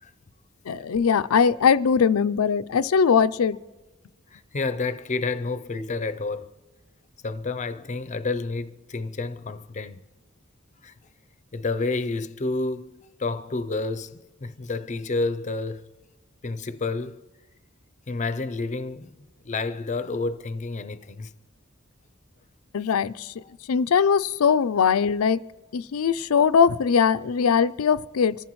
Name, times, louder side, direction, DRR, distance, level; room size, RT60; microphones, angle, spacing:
voice 1, 0.7-3.6 22.7-23.3 23.7-25.4 25.7-28.4, left 6 dB, 85° left, 0.4 m, -21 dB
voice 2, 4.3-6.5 7.2-10.0 10.8-10.9 11.5-15.8 16.4-17.2 18.1-21.3 23.4-23.5, left 3 dB, 35° left, 0.6 m, -30 dB
26.5 x 14.5 x 3.1 m
head